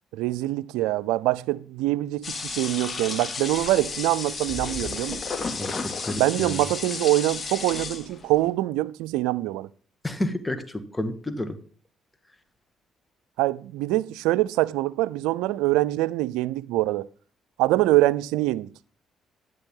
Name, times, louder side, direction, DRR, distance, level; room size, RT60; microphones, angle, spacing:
voice 1, 0.1-5.2 6.2-9.7 13.4-17.1 17.6-18.7, right 17 dB, 85° right, 0.4 m, -24 dB
sound 1, 2.2-8.3, left 4 dB, 40° left, 2.4 m, -33 dB
voice 2, 5.6-6.6 10.0-11.6, left 1 dB, 15° left, 1.8 m, -31 dB
12.0 x 10.5 x 3.8 m
supercardioid pair, 65°, 0 cm